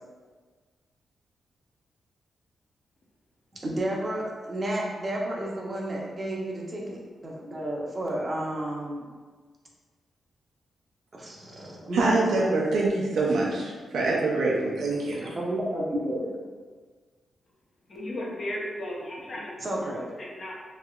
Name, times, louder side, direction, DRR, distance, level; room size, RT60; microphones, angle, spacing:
voice 1, 3.5-9.0 11.1-12.4 15.2-16.3 19.6-20.0, right 1 dB, 35° right, -2 dB, 0.7 m, -31 dB
voice 2, 11.9-15.2, right 2 dB, 85° right, -4 dB, 0.6 m, -25 dB
voice 3, 17.9-19.9 20.2-20.5, left 1 dB, 50° left, -3 dB, 0.7 m, -35 dB
3.1 x 2.8 x 2.3 m, 1.5 s
cardioid pair, 70°, 0 cm